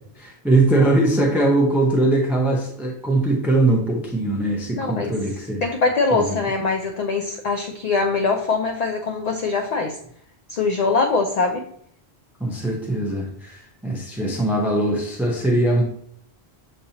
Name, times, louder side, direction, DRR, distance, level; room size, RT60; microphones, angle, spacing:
voice 1, 0.2-5.6 6.1-6.4 12.4-15.8, right 2 dB, ahead, -1 dB, 0.4 m, -21 dB
voice 2, 4.8-5.1 5.6-10.0 10.5-11.6, left 4 dB, 55° left, 3 dB, 0.4 m, -22 dB
6.6 x 2.8 x 2.7 m, 0.67 s
omnidirectional pair, 1.1 m